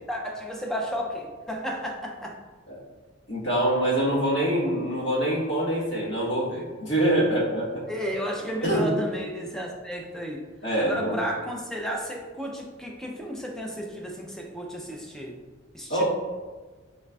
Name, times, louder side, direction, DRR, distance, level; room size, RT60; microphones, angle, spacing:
voice 1, 0.1-2.4 7.9-10.5 10.8-15.4 15.7-16.0, equal, 5° left, 0 dB, 0.4 m, -33 dB
voice 2, 3.3-7.8 8.7-8.9 10.6-11.2 15.9-16.0, right 1 dB, 60° left, -7 dB, 1.2 m, -25 dB
3.8 x 3.1 x 2.2 m, 1.3 s
head